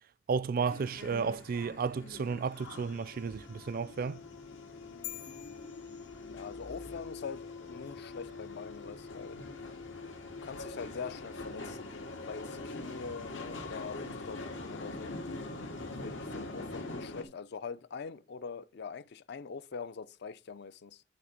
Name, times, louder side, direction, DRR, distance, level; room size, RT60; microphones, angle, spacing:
voice 1, 0.3-4.2, right 5 dB, 50° right, 0.4 m, -33 dB
sound 1, 0.6-17.2, left 2 dB, 90° left, 2.1 m, -43 dB
sound 2, 5.0-6.8, left 12 dB, 45° left, 1.0 m, -47 dB
voice 2, 6.3-7.4 7.7-9.4 10.4-11.9 12.3-15.2 16.0-21.0, left 5 dB, 60° left, 0.4 m, -43 dB
11.5 x 4.2 x 5.1 m
head